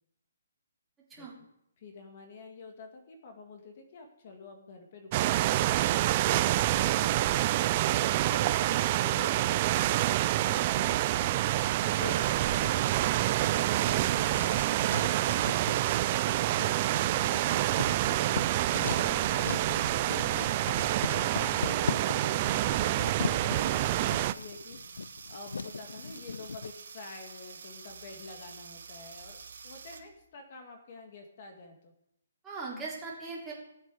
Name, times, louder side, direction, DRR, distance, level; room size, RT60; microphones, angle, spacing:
voice 1, 1.8-5.4 6.4-14.6 16.9-29.4 29.6-31.9, left 4 dB, 45° left, 4 dB, 2.0 m, -48 dB
sound 1, 5.1-24.3, right 15 dB, 30° right, 0.4 m, -27 dB
Writing, 12.4-26.7, left 4 dB, 85° left, 0.4 m, -39 dB
sound 2, 23.5-30.2, right 5 dB, 70° right, 1.9 m, -48 dB
voice 2, 32.4-33.5, right 4 dB, 10° right, -5 dB, 3.3 m, -41 dB
17.5 x 7.7 x 4.9 m, 0.80 s
hypercardioid pair, 155°, 0 cm